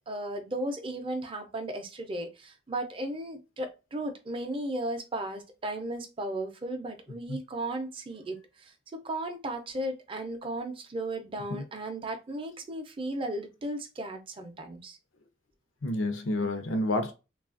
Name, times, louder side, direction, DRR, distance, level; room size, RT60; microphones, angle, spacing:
voice 1, 0.1-15.0, right 1 dB, 25° right, 0.5 m, -35 dB
voice 2, 15.8-17.1, left 1 dB, 80° left, 0.6 m, -29 dB
3.1 x 2.3 x 2.4 m
head